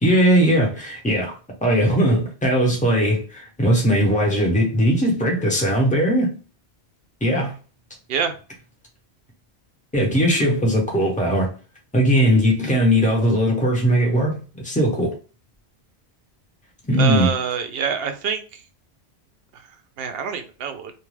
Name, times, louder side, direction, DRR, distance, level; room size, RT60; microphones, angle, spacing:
voice 1, 0.0-1.3 1.6-6.4 7.2-7.5 9.9-11.5 11.9-15.1 16.9-17.3, equal, 10° left, 0.7 m, -19 dB
voice 2, 17.0-18.6 19.5-19.6 20.0-20.9, right 7 dB, 65° right, 0.7 m, -26 dB
2.6 x 2.3 x 3.1 m
omnidirectional pair, 1.1 m